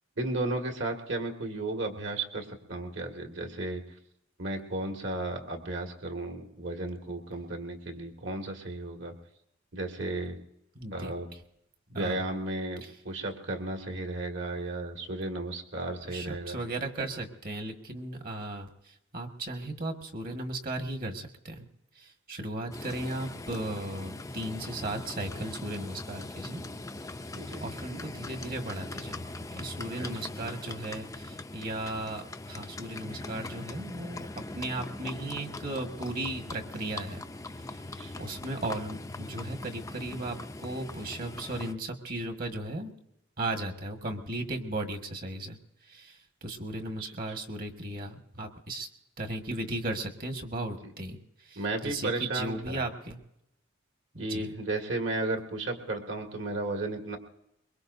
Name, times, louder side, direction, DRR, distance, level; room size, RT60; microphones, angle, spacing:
voice 1, 0.2-3.8 4.4-9.1 9.7-10.4 10.9-11.3 11.9-16.6 27.3-27.6 38.0-38.1 47.0-47.1 50.8-50.9 51.6-52.8 54.2-57.2, right 2 dB, 60° right, 3 dB, 2.1 m, -34 dB
voice 2, 10.7-11.1 11.9-12.2 12.8-12.9 16.0-21.6 21.9-26.6 27.6-34.3 34.5-37.2 37.6-37.8 38.2-42.9 43.4-45.6 45.8-48.9 49.2-53.2 54.1-54.5, right 2 dB, 45° right, 4 dB, 1.7 m, -36 dB
Livestock farm animals working animals, 22.7-41.7, left 2 dB, 15° left, 0.5 m, -41 dB
23.0 x 22.0 x 2.7 m, 0.80 s
head